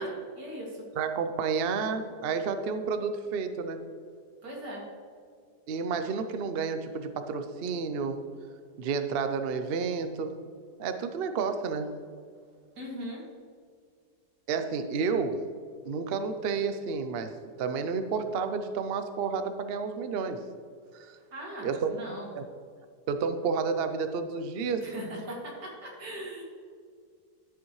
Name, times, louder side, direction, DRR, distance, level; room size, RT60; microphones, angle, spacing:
voice 1, 0.0-0.9 4.4-4.8 12.7-13.2 21.3-22.3 24.8-26.4, right 1 dB, 65° right, -4 dB, 3.0 m, -39 dB
voice 2, 1.0-3.8 5.7-8.2 8.8-10.4 10.8-11.9 14.5-15.4 15.8-17.3 17.6-20.4 20.9-21.2 21.6-21.9 22.3-22.4 23.1-24.9, right 5 dB, 80° right, 8 dB, 0.5 m, -30 dB
12.0 x 7.6 x 3.1 m, 2.1 s
omnidirectional pair, 1.9 m